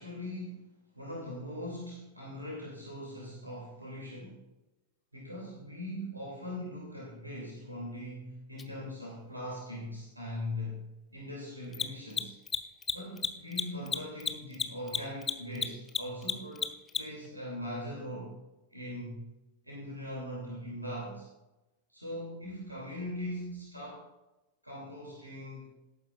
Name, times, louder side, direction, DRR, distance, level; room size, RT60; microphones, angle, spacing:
voice 1, 0.0-4.4 5.1-12.3 12.9-18.3 18.7-19.3 19.6-21.3 21.9-24.1 24.6-25.7, left 1 dB, 85° right, -3 dB, 2.7 m, -41 dB
Mechanisms, 8.6-8.7 11.6-17.3, left 6 dB, 20° left, 0.8 m, -32 dB
17.0 x 8.9 x 2.5 m, 0.98 s
figure-of-eight pair, 90°, 0 cm